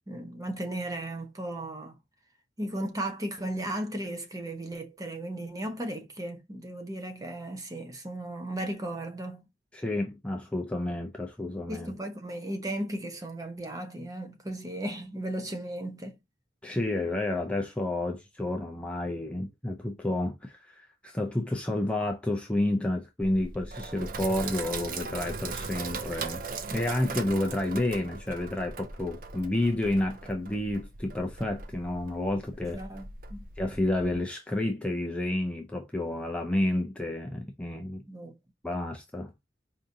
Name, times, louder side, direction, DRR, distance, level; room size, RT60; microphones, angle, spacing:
voice 1, 0.1-1.9 2.6-9.5 11.7-16.2 32.6-33.5 38.1-38.4, right 1 dB, 20° right, 0.8 m, -36 dB
voice 2, 9.7-11.9 16.6-26.4 26.7-32.8 33.6-38.0 38.6-39.3, left 1 dB, 5° left, 0.5 m, -30 dB
Sink (filling or washing), 23.2-34.2, right 4 dB, 55° right, 0.6 m, -39 dB
4.8 x 2.6 x 2.7 m
head